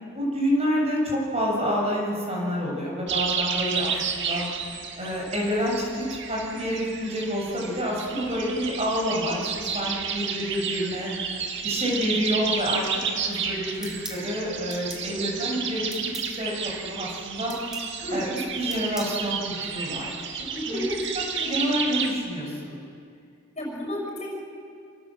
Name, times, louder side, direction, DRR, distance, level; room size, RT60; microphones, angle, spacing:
voice 1, 0.1-4.5 5.0-5.9 6.3-9.5 9.7-11.1 11.6-12.8 13.3-16.5 16.8-17.6 18.1-20.1 20.7-21.0 21.3-22.8, equal, 30° right, -2 dB, 7.6 m, -28 dB
sound 1, 3.1-22.1, right 6 dB, 60° right, 2.3 m, -31 dB
voice 2, 8.1-8.5 18.0-18.3 20.5-20.9 23.5-24.3, equal, 35° left, 0 dB, 6.5 m, -33 dB
sound 2, 13.8-14.2 14.7-15.1 15.9-16.3 17.5-17.9 18.7-19.2, equal, 5° right, 2.6 m, -39 dB
29.0 x 26.0 x 7.9 m, 2.4 s
head